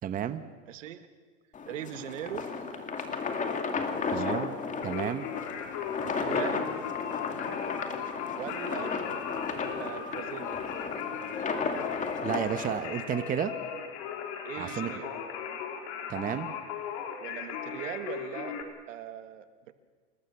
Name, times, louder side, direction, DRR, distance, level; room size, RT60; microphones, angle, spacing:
voice 1, 0.0-0.4 4.1-4.6 4.8-5.3 12.2-13.5 14.6-14.9 16.1-16.5, right 9 dB, 20° right, 10 dB, 1.0 m, -32 dB
voice 2, 0.7-1.1 1.7-2.5 4.0-4.4 6.0-6.7 8.3-9.1 9.8-10.7 14.4-15.2 17.2-19.7, right 11 dB, 80° right, 9 dB, 2.1 m, -40 dB
sound 1, 1.5-12.8, left 5 dB, 20° left, 2.5 m, -34 dB
Singing, 4.8-18.6, left 7 dB, 60° left, 3.9 m, -38 dB
27.5 x 20.0 x 7.2 m, 1.5 s
supercardioid pair, 135°, 38 cm